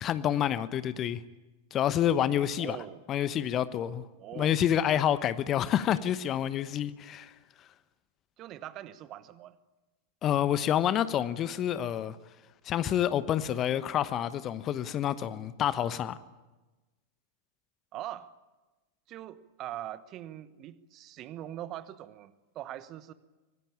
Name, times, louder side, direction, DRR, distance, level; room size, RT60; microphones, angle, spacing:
voice 1, 0.0-1.2 1.7-2.8 3.1-4.1 4.3-7.3 10.2-12.2 12.6-16.2, left 10 dB, 30° left, 1.0 m, -28 dB
voice 2, 2.6-3.0 4.2-4.6 8.4-9.6 17.9-18.3 19.1-23.1, right 12 dB, 35° right, 1.1 m, -42 dB
25.5 x 19.0 x 8.7 m
figure-of-eight pair, 90°, 0 cm